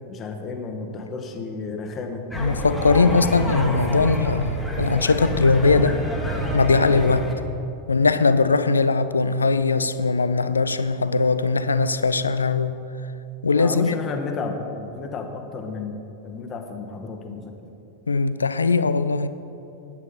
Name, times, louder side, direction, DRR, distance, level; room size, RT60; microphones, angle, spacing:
voice 1, 0.1-2.2 13.5-17.6, left 4 dB, 25° left, 1.2 m, -32 dB
sound 1, 2.3-7.3, equal, 5° left, 1.5 m, -28 dB
voice 2, 2.4-6.0 6.5-7.3 7.9-12.8 13.4-13.9 18.1-19.3, left 4 dB, 75° left, 0.4 m, -20 dB
9.6 x 9.1 x 5.5 m
figure-of-eight pair, 90°, 0 cm